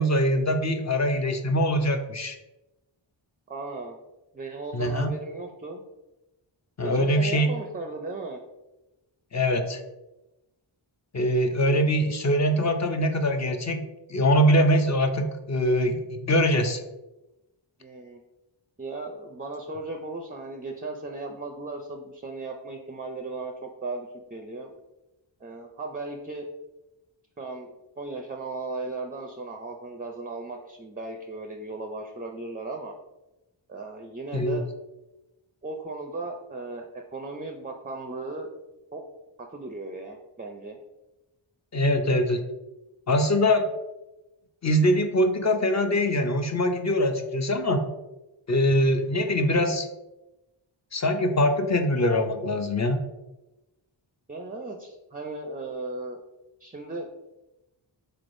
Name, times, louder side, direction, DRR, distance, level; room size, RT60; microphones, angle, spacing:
voice 1, 0.0-2.4 4.7-5.1 6.8-7.5 9.3-9.8 11.1-16.8 34.3-34.6 41.7-42.4 43.1-43.7 44.6-47.8 48.5-49.9 50.9-53.0, equal, 35° left, 6 dB, 0.5 m, -23 dB
voice 2, 3.5-4.0 4.3-5.8 6.8-8.4 17.8-18.2 18.8-24.7 25.4-26.5 27.4-32.9 33.7-34.6 35.6-38.5 38.9-39.0 39.4-40.8 54.3-56.2 56.6-57.1, right 3 dB, 20° right, 3 dB, 0.4 m, -36 dB
3.8 x 3.3 x 2.5 m, 0.98 s
cardioid pair, 40°, 49 cm